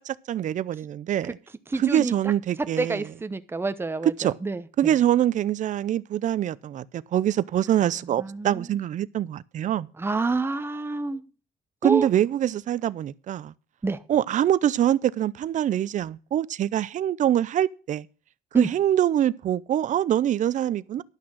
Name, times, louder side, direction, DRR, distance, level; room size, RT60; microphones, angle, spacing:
voice 1, 0.1-1.4 1.8-3.1 4.0-4.4 4.8-9.9 11.8-13.5 14.1-18.1 18.5-21.0, right 11 dB, 50° right, 0.5 m, -24 dB
voice 2, 1.7-2.1 2.8-4.9 8.2-8.7 10.0-11.2 11.8-12.1 13.8-14.0 18.5-18.7, right 3 dB, 15° right, 0.8 m, -28 dB
11.5 x 6.1 x 6.2 m
cardioid pair, 110°, 17 cm